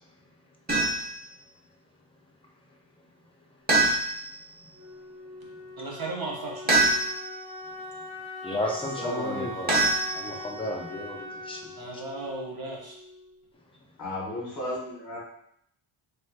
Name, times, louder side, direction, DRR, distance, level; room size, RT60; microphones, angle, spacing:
sound 1, 0.7-1.2 3.7-4.4 6.7-7.4 9.7-10.6, right 2 dB, 20° right, 0.9 m, -24 dB
Wind instrument woodwind instrument, 4.7-13.4, left 1 dB, 75° right, 0.8 m, -41 dB
voice 1, 5.8-6.8 11.8-13.0, right 2 dB, 45° right, -1 dB, 0.9 m, -36 dB
voice 2, 8.4-12.0, left 1 dB, 10° left, -1 dB, 0.5 m, -34 dB
voice 3, 9.0-9.5 14.0-15.2, left 1 dB, 40° left, -7 dB, 1.1 m, -34 dB
3.4 x 2.9 x 2.2 m, 0.71 s
wide cardioid pair, 110°, 50 cm